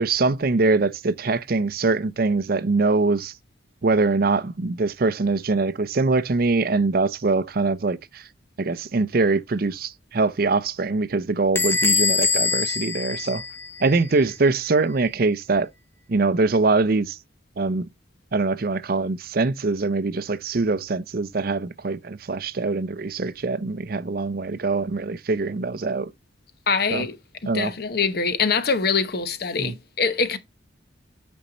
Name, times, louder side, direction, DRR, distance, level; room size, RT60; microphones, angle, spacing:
voice 1, 0.0-3.3 3.8-8.3 8.6-13.4 13.8-15.7 16.1-17.2 17.6-17.9 18.3-26.1 26.9-27.1 27.4-27.7 29.6-29.8, right 3 dB, 50° right, 0.5 m, -23 dB
Bell / Door, 11.6-14.1, left 4 dB, 15° left, 0.5 m, -23 dB
voice 2, 26.7-27.2 27.4-30.4, left 5 dB, 55° left, 0.9 m, -24 dB
8.6 x 5.4 x 3.9 m
head